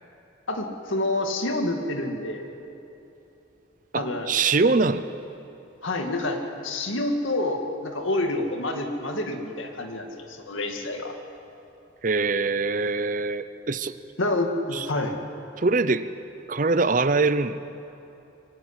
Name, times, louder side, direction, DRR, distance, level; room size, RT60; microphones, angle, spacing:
voice 1, 0.5-2.4 3.9-4.3 5.8-11.2 14.2-15.1, left 2 dB, 85° left, 4 dB, 2.2 m, -28 dB
voice 2, 3.9-5.0 12.0-14.0 14.7-14.9 15.6-16.1 16.5-17.6, right 3 dB, 40° right, 13 dB, 0.6 m, -23 dB
23.5 x 18.0 x 8.2 m, 2.8 s
head